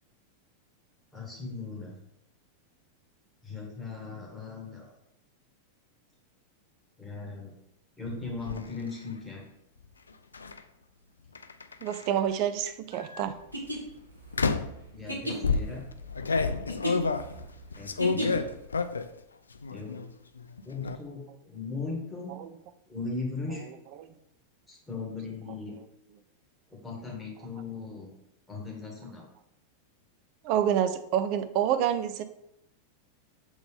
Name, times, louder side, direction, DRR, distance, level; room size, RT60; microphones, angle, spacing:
voice 1, 1.1-2.0 3.4-4.9 7.0-7.6 8.0-9.4 14.9-15.8 17.7-18.5 19.7-20.0 20.6-22.4 22.9-23.7 24.7-25.8 26.7-28.1 28.5-29.3, left 4 dB, 5° left, -3 dB, 2.0 m, -38 dB
sound 1, 8.1-8.6 10.3-10.6 11.4-12.2 12.9-13.2 14.3-14.8 15.4-19.2 19.6-20.1 20.4-21.0, left 4 dB, 75° left, 0.3 m, -30 dB
voice 2, 11.8-13.4 22.4-22.5 24.0-24.1 30.4-32.2, right 10 dB, 45° right, 10 dB, 0.5 m, -27 dB
sound 2, 13.4-18.6, right 1 dB, 90° right, 1.2 m, -36 dB
7.0 x 3.9 x 3.6 m, 0.80 s
figure-of-eight pair, 90°, 0 cm